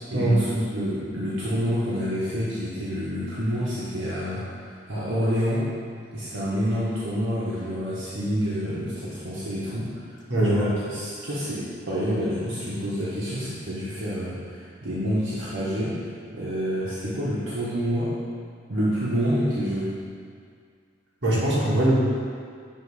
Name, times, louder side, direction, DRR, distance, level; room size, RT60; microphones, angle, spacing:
voice 1, 0.1-5.6 6.1-10.0 10.4-16.0 16.3-18.1 18.7-19.9, equal, 75° right, -10 dB, 1.1 m, -28 dB
voice 2, 10.3-10.7 21.2-21.9, right 1 dB, 60° right, -7 dB, 1.6 m, -21 dB
7.6 x 3.1 x 4.8 m, 2.1 s
head